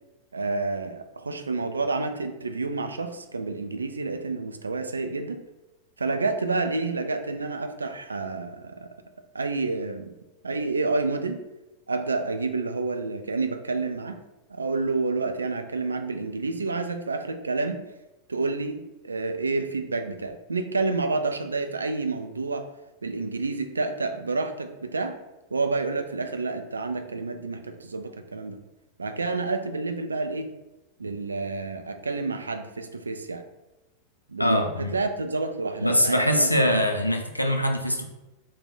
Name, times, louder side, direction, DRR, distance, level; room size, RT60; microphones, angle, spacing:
voice 1, 0.3-5.4 6.0-8.9 9.3-10.1 10.4-11.5 11.9-14.2 14.5-17.8 18.3-22.7 23.0-25.2 25.5-28.6 29.0-30.5 31.0-33.4 34.3-36.8, right 3 dB, 75° right, 7 dB, 0.3 m, -29 dB
voice 2, 34.4-35.0 35.8-38.0, equal, 85° left, 4 dB, 0.4 m, -23 dB
3.0 x 2.2 x 3.9 m, 0.99 s
figure-of-eight pair, 90°, 0 cm